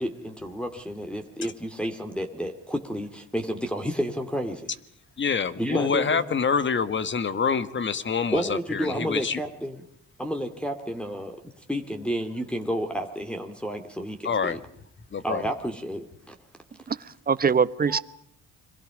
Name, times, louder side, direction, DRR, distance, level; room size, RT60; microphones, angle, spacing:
voice 1, 0.0-4.7 5.6-6.2 8.3-9.8 10.2-11.4 11.7-14.6 15.2-16.3 17.9-18.0, equal, 5° left, 2 dB, 2.4 m, -31 dB
voice 2, 5.2-9.4 14.2-14.6 15.1-15.4, left 6 dB, 40° left, 13 dB, 1.6 m, -26 dB
voice 3, 16.9-18.0, right 6 dB, 30° right, 16 dB, 1.0 m, -23 dB
29.5 x 23.5 x 5.1 m, 0.66 s
cardioid pair, 90°, 30 cm